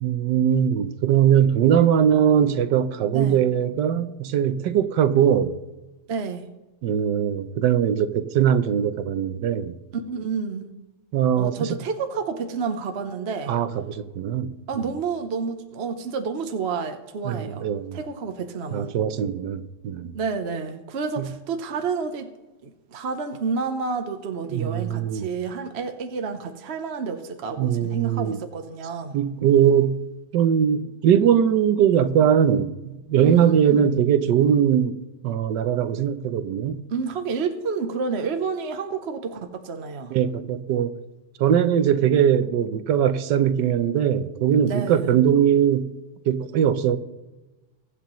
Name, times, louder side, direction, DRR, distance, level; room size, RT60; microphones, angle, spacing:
voice 1, 0.0-5.6 6.8-9.8 11.1-11.8 13.5-14.9 17.2-18.0 18.7-20.1 21.2-21.3 24.5-25.2 27.6-28.4 29.1-30.0 30.3-35.0 35.2-36.8 40.1-40.9 41.4-45.9 46.3-47.0, right 9 dB, 70° right, 1.3 m, -21 dB
voice 2, 6.1-6.5 9.9-10.7 11.4-13.6 14.7-17.7 17.9-18.9 20.1-22.3 22.6-29.2 33.2-33.9 36.9-40.2 44.7-45.2, right 5 dB, 50° right, 0.8 m, -29 dB
22.5 x 8.3 x 3.1 m
omnidirectional pair, 2.1 m